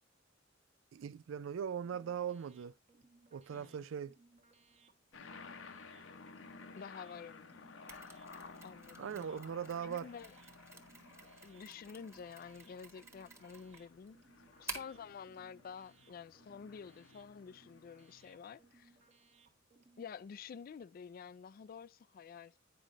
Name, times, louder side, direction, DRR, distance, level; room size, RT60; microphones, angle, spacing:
voice 1, 0.9-2.7 3.3-4.2 9.0-10.1, right 8 dB, 80° right, 0.3 m, -40 dB
sound 1, 1.6-20.1, right 3 dB, 35° right, 1.0 m, -67 dB
sound 2, 5.1-18.8, left 4 dB, 80° left, 0.9 m, -56 dB
voice 2, 6.8-7.7 8.6-9.2 9.8-10.3 11.4-14.2 14.6-19.0 20.0-22.5, left 6 dB, 45° left, 0.3 m, -50 dB
Mechanisms, 7.9-15.1, right 3 dB, 15° right, 1.2 m, -52 dB
9.2 x 5.1 x 3.8 m
head